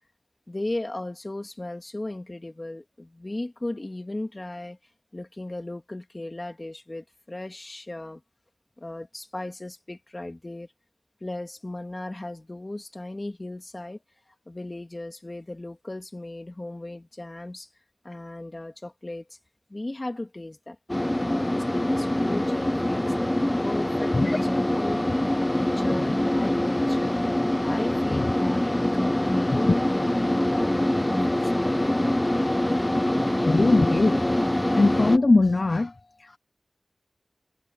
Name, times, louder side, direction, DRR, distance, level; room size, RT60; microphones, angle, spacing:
voice 1, 0.5-4.8 5.1-8.2 8.8-10.7 11.2-14.0 14.5-17.7 18.0-19.2 19.7-20.8 21.2-24.4 24.7-25.3 25.5-27.2 27.6-32.1 33.2-33.3, left 2 dB, 35° left, 2.4 m, -36 dB
sound 1, 20.9-35.2, left 1 dB, 15° left, 1.0 m, -24 dB
voice 2, 33.4-34.2 34.8-36.4, left 2 dB, 50° left, 0.6 m, -21 dB
wide cardioid pair, 65°, 0 cm